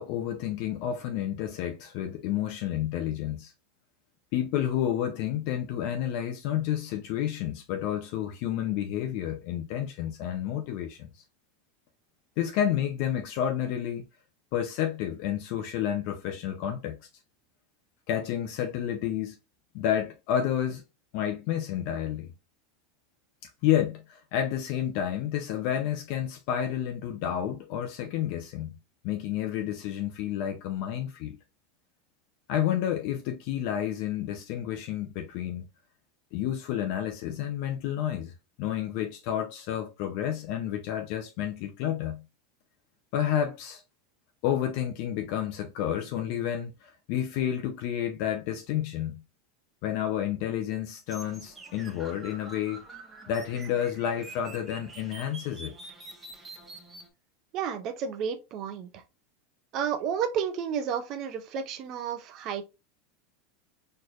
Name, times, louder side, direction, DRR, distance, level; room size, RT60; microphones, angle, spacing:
voice 1, 0.0-3.5 4.3-11.1 12.4-14.0 14.5-17.0 18.1-19.3 19.7-20.8 21.1-22.3 23.6-28.7 29.0-31.4 32.5-35.7 36.3-38.3 38.6-42.2 43.1-43.8 44.4-49.2 49.8-52.8 53.3-55.7, left 10 dB, 60° left, 0.7 m, -30 dB
sound 1, 51.1-57.1, right 3 dB, 15° right, 1.1 m, -46 dB
voice 2, 57.5-59.0 59.7-62.6, right 7 dB, 50° right, 0.7 m, -31 dB
4.4 x 3.2 x 2.5 m
supercardioid pair, 120°, 0 cm